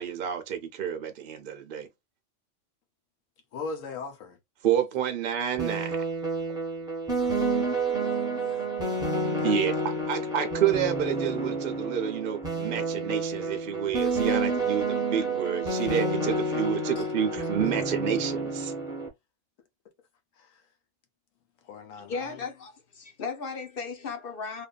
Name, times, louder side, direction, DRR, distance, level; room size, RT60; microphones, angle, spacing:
voice 1, 0.0-1.9 4.6-6.0 9.4-18.7, right 9 dB, 60° right, 0.5 m, -29 dB
voice 2, 3.5-4.4 8.0-9.6 17.0-17.1 17.6-17.7 20.4-20.7 21.6-22.4, left 4 dB, 85° left, 1.2 m, -41 dB
sound 1, 5.6-19.1, right 2 dB, 5° right, 0.9 m, -29 dB
voice 3, 22.0-24.7, left 5 dB, 55° left, 0.7 m, -36 dB
2.7 x 2.5 x 2.2 m
omnidirectional pair, 1.3 m